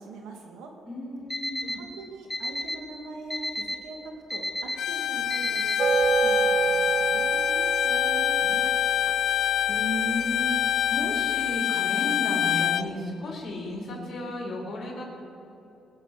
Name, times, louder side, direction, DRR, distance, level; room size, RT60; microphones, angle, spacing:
voice 1, 0.0-0.7 1.6-5.8 6.1-8.7, right 3 dB, 90° right, 2 dB, 2.0 m, -42 dB
voice 2, 0.9-1.8 9.7-15.0, left 1 dB, 45° left, -3 dB, 3.5 m, -33 dB
Alarm, 1.3-1.7 2.3-2.7 3.3-3.7 4.3-4.7 5.3-5.7, left 1 dB, 15° left, 2.0 m, -30 dB
Bowed string instrument, 4.8-12.9, left 11 dB, 70° left, 0.4 m, -26 dB
sound 1, 5.8-11.3, right 5 dB, 45° right, 0.4 m, -29 dB
20.0 x 6.8 x 6.6 m, 2.9 s
cardioid pair, 90°, 0 cm